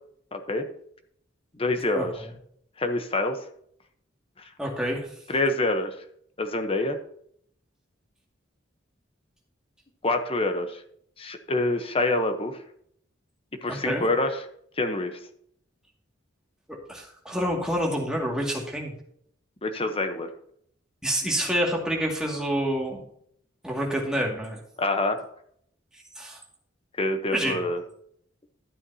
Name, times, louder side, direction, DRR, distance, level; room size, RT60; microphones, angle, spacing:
voice 1, 0.3-0.7 1.6-2.2 2.8-3.4 4.4-4.5 5.3-5.9 6.4-7.0 10.0-10.8 11.2-12.6 13.6-14.4 14.8-15.2 19.6-20.3 24.8-25.2 27.0-27.8, left 2 dB, 30° left, 7 dB, 0.9 m, -26 dB
voice 2, 4.6-5.1 13.7-14.0 16.9-18.9 21.0-23.0 23.6-24.6 26.2-26.4 27.3-27.6, equal, 5° right, -2 dB, 2.2 m, -27 dB
12.5 x 9.0 x 2.8 m, 0.66 s
head